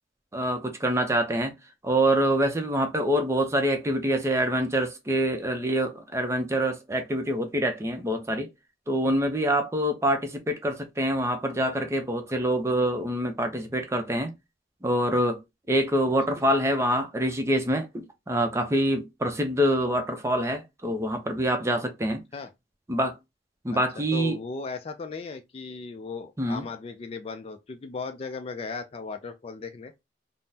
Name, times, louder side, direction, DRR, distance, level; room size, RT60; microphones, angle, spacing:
voice 1, 0.3-1.5 1.8-8.5 8.9-14.3 14.8-15.4 15.7-22.2 22.9-23.1 23.6-24.4 26.4-26.6, right 1 dB, 15° right, 0.5 m, -25 dB
voice 2, 23.7-29.9, left 4 dB, 35° left, 0.3 m, -37 dB
3.6 x 2.0 x 2.7 m
head